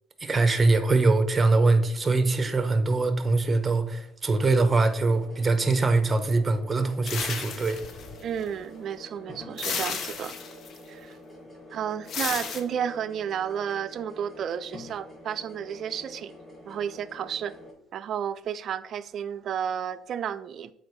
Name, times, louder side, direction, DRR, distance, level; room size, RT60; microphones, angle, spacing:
voice 1, 0.2-7.8, right 3 dB, 25° right, 0.9 m, -23 dB
sound 1, 4.3-17.7, left 1 dB, 15° left, 2.6 m, -47 dB
sound 2, 7.0-8.5 9.6-10.8 12.1-12.6, left 6 dB, 55° left, 0.8 m, -33 dB
voice 2, 8.2-10.4 10.9-11.2 11.7-16.3 16.7-17.5 17.9-20.7, right 8 dB, 55° right, 0.4 m, -32 dB
7.7 x 4.3 x 3.2 m
supercardioid pair, 75°, 0 cm